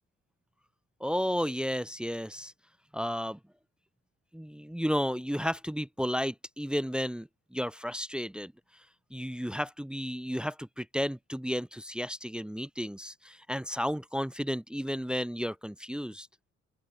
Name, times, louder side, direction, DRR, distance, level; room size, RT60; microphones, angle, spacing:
voice 1, 1.0-2.5 2.9-3.4 4.3-8.5 9.1-16.3, equal, 5° right, 0.8 m, -33 dB
cardioid pair, 90°, 30 cm